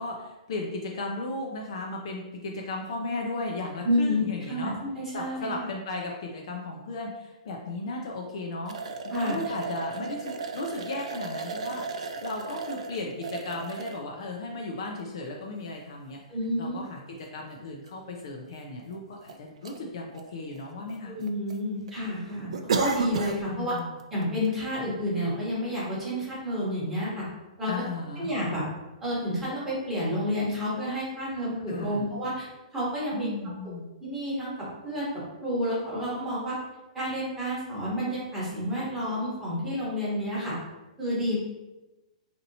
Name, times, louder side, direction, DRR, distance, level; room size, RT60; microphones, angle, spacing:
voice 1, 0.0-4.7 5.1-8.8 9.0-16.2 16.6-21.2 23.5-24.0 27.7-28.3 31.7-32.1 33.1-33.9, left 2 dB, 40° left, 0 dB, 0.4 m, -35 dB
voice 2, 3.8-4.2 4.5-5.5 9.1-9.3 16.3-16.8 21.0-22.5 22.8-23.7 24.1-27.3 27.6-27.7 28.2-28.6 29.0-32.5 32.7-33.3 33.6-33.7 34.0-34.5 34.8-35.1 35.4-36.6 36.9-40.5 41.0-41.4, equal, 5° right, -8 dB, 1.0 m, -29 dB
sound 1, 8.7-14.0 14.7-14.8 16.4-16.5 16.8-16.9 17.9-18.0 18.2-18.3 18.9-19.4 19.6-19.8 20.2-20.9 21.2-21.6 21.9-22.0 22.5-23.4 23.8-24.0 24.4-24.5, right 4 dB, 55° right, 0.3 m, -33 dB
4.2 x 2.8 x 2.7 m, 1.0 s
hypercardioid pair, 175°, 4 cm